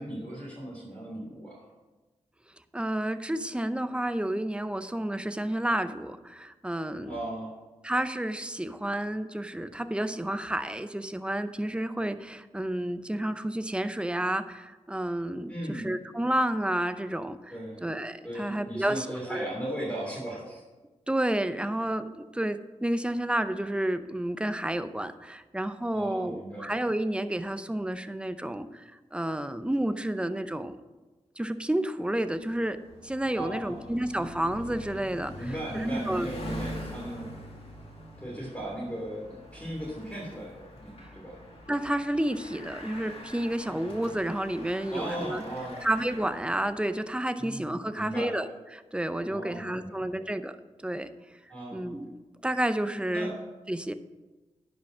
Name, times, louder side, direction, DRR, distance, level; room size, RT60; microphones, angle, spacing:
voice 1, 0.0-1.6 7.1-7.5 15.5-15.9 17.5-17.8 18.2-20.6 25.9-26.7 33.4-34.2 35.4-37.4 38.2-41.4 43.7-43.8 44.9-45.8 47.4-48.3 49.3-50.3 51.5-51.9 53.1-53.4, right 1 dB, 10° left, -4 dB, 2.8 m, -37 dB
voice 2, 2.7-7.2 7.8-17.5 17.8-19.4 21.1-30.8 31.4-32.8 33.0-36.3 41.7-45.4 45.8-50.6 50.8-51.1 51.7-53.3 53.7-53.9, right 1 dB, 10° right, 11 dB, 0.6 m, -30 dB
Bicycle, 32.3-46.9, equal, 50° left, 2.4 m, -44 dB
10.5 x 5.2 x 6.1 m, 1.2 s
cardioid pair, 70°, 12 cm